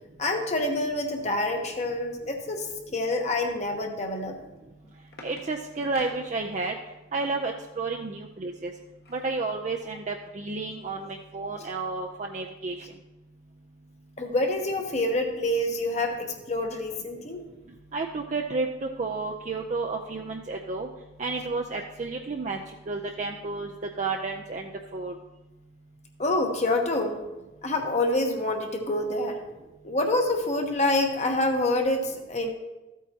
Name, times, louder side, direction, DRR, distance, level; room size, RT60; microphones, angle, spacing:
voice 1, 0.2-4.4 14.2-17.4 26.2-27.2 27.6-29.4 29.8-32.5, left 2 dB, 35° left, 3 dB, 1.1 m, -27 dB
sound 1, 4.5-7.0 8.5-9.4 9.9-10.0 10.3-10.5, left 2 dB, 55° left, 1.4 m, -49 dB
voice 2, 5.2-6.7 7.1-8.7 9.1-12.8 17.9-20.9 21.2-22.6 22.9-23.7 24.0-25.1, right 3 dB, 40° right, 2 dB, 0.5 m, -31 dB
14.0 x 8.3 x 2.8 m, 1.1 s
head